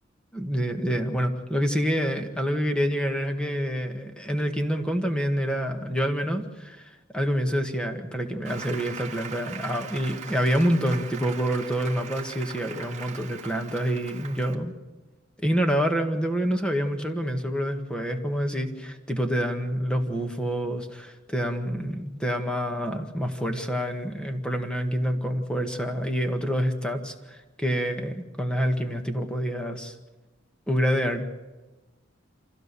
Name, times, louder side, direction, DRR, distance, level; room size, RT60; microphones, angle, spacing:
voice 1, 0.3-14.7 15.4-29.9 30.7-31.4, equal, 5° left, 5 dB, 1.8 m, -27 dB
Applause, 8.4-14.6, right 6 dB, 40° right, 2.1 m, -40 dB
26.0 x 16.0 x 7.0 m, 1.2 s
head